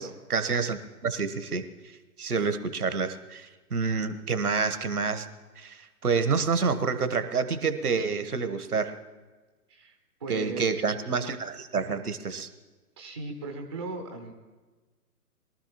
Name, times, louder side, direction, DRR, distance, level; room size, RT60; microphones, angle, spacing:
voice 1, 0.0-1.6 2.2-5.3 5.6-9.0 10.3-12.5, right 5 dB, 65° right, 10 dB, 1.2 m, -28 dB
voice 2, 9.7-10.8 13.0-14.3, right 3 dB, 15° right, 3 dB, 0.6 m, -38 dB
22.5 x 13.0 x 3.0 m, 1.3 s
figure-of-eight pair, 130°, 47 cm